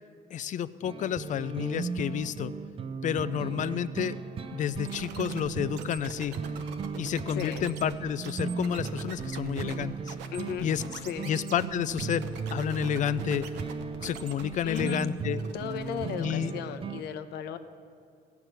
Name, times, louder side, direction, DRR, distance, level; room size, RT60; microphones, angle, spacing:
voice 1, 0.3-2.5 3.0-4.2 4.5-6.3 7.0-10.1 10.6-10.8 11.2-12.2 12.5-13.5 14.0-15.4 16.2-16.5, left 9 dB, 50° left, 15 dB, 0.5 m, -30 dB
sound 1, 0.8-17.0, right 5 dB, 35° right, 0.5 m, -36 dB
sound 2, 4.8-15.0 15.4-16.2, right 6 dB, 85° right, 1.1 m, -43 dB
voice 2, 7.4-7.7 10.3-10.7 11.0-11.3 14.6-15.0 15.5-17.6, left 8 dB, 75° left, 9 dB, 0.8 m, -35 dB
15.5 x 5.9 x 9.1 m, 2.5 s
cardioid pair, 110°, 17 cm